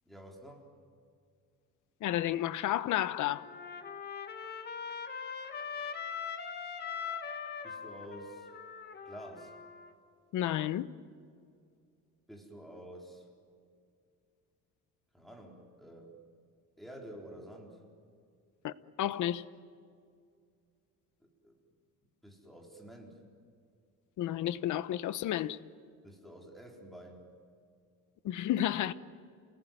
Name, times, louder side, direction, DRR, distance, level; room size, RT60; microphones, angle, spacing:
voice 1, 0.1-0.7 7.6-8.5 9.0-9.5 12.3-13.3 15.1-16.2 16.8-17.8 21.2-21.6 22.2-23.2 26.0-27.2, right 1 dB, ahead, 4.2 m, -49 dB
voice 2, 2.0-3.4 10.3-10.9 18.6-18.7 19.0-19.4 24.2-25.6 28.2-28.9, left 12 dB, 65° left, 1.0 m, -31 dB
Trumpet, 3.3-9.9, left 6 dB, 30° left, 1.7 m, -41 dB
29.0 x 19.0 x 9.3 m
cardioid pair, 140°, 33 cm